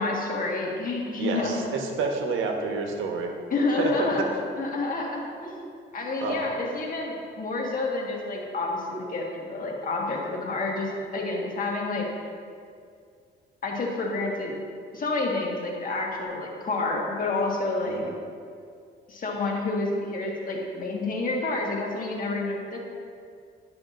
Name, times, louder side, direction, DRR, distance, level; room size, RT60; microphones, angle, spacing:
voice 1, 0.0-1.6 3.5-4.2 4.6-12.1 13.6-14.5 14.9-18.0 19.1-22.8, left 3 dB, 45° left, -2 dB, 1.5 m, -29 dB
voice 2, 1.2-3.4 3.8-4.1 6.2-6.5 18.0-18.1, right 4 dB, 80° right, 2 dB, 1.0 m, -29 dB
11.0 x 6.0 x 2.5 m, 2.3 s
cardioid pair, 90°, 20 cm